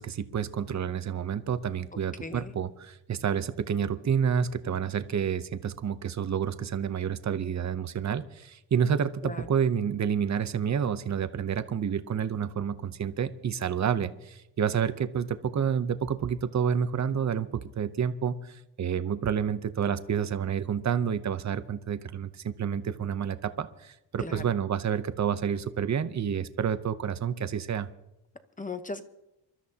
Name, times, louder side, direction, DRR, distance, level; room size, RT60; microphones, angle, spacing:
voice 1, 0.0-27.9, right 7 dB, 35° right, 12 dB, 0.7 m, -29 dB
voice 2, 1.9-2.5 9.2-9.5 24.2-24.5 28.6-29.0, left 3 dB, 15° left, 9 dB, 0.9 m, -38 dB
27.0 x 13.0 x 2.8 m, 0.89 s
wide cardioid pair, 140°, 47 cm